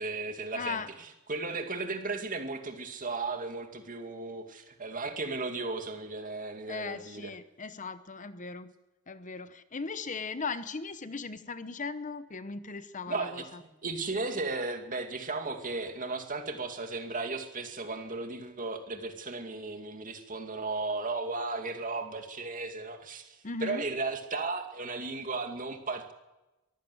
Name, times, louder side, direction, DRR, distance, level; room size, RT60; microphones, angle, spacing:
voice 1, 0.0-7.3 13.1-26.1, right 3 dB, 40° right, 5 dB, 2.3 m, -35 dB
voice 2, 0.5-0.9 6.7-8.7 9.1-13.6 23.4-23.8, left 4 dB, 35° left, 13 dB, 0.9 m, -38 dB
23.0 x 15.0 x 7.8 m, 1.0 s
head